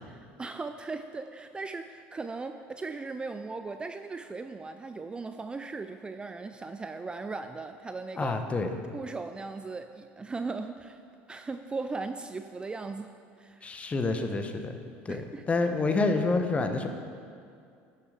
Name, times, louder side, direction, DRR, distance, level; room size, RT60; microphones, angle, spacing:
voice 1, 0.4-8.4 8.9-11.0 11.3-13.7 15.1-15.5, right 3 dB, 20° right, 8 dB, 0.4 m, -38 dB
voice 2, 8.2-8.8 13.6-14.8 15.0-16.9, left 3 dB, 25° left, 6 dB, 1.0 m, -28 dB
11.5 x 7.3 x 5.0 m, 2.3 s
supercardioid pair, 100°, 5 cm